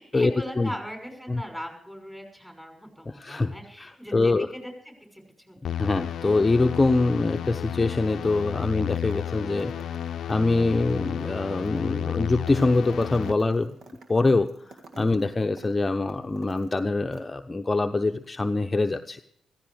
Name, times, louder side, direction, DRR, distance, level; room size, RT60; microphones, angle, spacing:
voice 1, 0.0-5.6 6.2-6.4 14.9-15.1, equal, 5° right, 3 dB, 6.0 m, -39 dB
voice 2, 3.1-3.5 3.8-4.5 5.8-10.0 10.3-13.8 14.1-19.2, left 3 dB, 25° left, 6 dB, 0.7 m, -24 dB
sound 1, 5.6-13.3, left 10 dB, 65° left, 0.5 m, -32 dB
sound 2, 9.0-9.3 9.6-16.8 17.1-17.2, right 3 dB, 65° right, 1.8 m, -49 dB
15.0 x 15.0 x 4.8 m, 0.69 s
hypercardioid pair, 45°, 0 cm